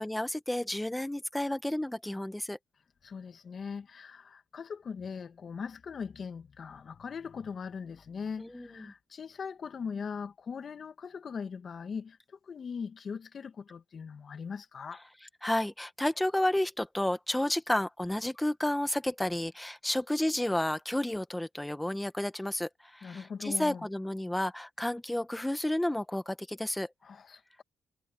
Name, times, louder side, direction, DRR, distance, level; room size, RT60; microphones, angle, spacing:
voice 1, 0.0-2.6 8.4-8.9 15.4-26.9, left 1 dB, 5° left, 1.3 m, -31 dB
voice 2, 3.0-12.2 12.5-15.0 23.0-23.9 27.0-27.6, left 6 dB, 45° left, 1.4 m, -40 dB
cardioid pair, 90°, 0 cm